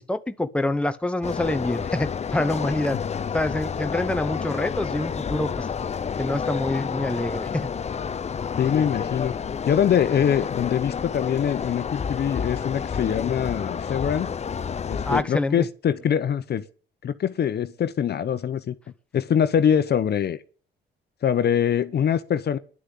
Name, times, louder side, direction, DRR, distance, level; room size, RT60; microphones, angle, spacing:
voice 1, 0.0-3.0 3.3-5.7 6.2-7.7 15.0-15.7, left 2 dB, 5° left, 1.0 m, -26 dB
sound 1, 1.2-15.2, left 6 dB, 35° left, 0.6 m, -30 dB
voice 2, 8.6-9.3 9.7-14.3 14.9-16.6 17.0-18.7 19.1-20.4 21.2-22.6, left 8 dB, 55° left, 1.0 m, -23 dB
11.0 x 6.7 x 9.4 m
cardioid pair, 90°, 20 cm